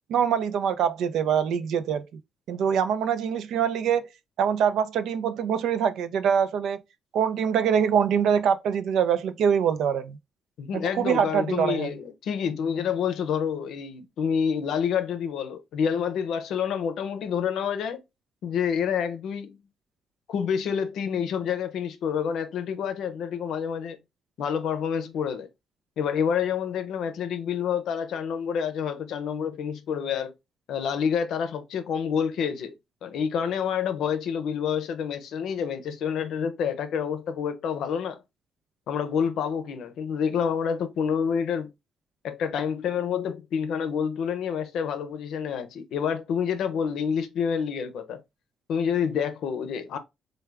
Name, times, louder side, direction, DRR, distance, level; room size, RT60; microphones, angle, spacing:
voice 1, 0.1-2.0 2.5-4.1 4.4-6.8 7.1-10.2 10.7-11.9, right 8 dB, 75° right, 0.4 m, -24 dB
voice 2, 10.6-18.0 18.4-19.6 20.3-24.0 24.4-25.5 26.0-30.3 30.7-32.8 33.0-38.2 38.9-41.7 42.2-48.2 48.7-50.0, left 7 dB, 75° left, 0.6 m, -28 dB
3.4 x 2.2 x 3.3 m
cardioid pair, 90°, 0 cm